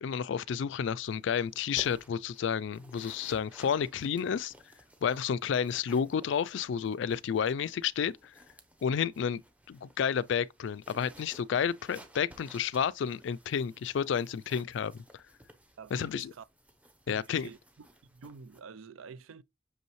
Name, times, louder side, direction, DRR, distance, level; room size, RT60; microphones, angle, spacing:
voice 1, 0.0-4.5 5.0-8.3 8.8-9.4 9.7-15.0 15.9-16.3 17.1-17.5, left 7 dB, 60° left, 0.3 m, -31 dB
sound 1, 1.0-18.6, equal, 5° right, 0.7 m, -57 dB
voice 2, 15.8-16.5 17.1-17.6 18.0-19.4, right 5 dB, 85° right, 0.4 m, -48 dB
6.1 x 5.4 x 3.0 m
head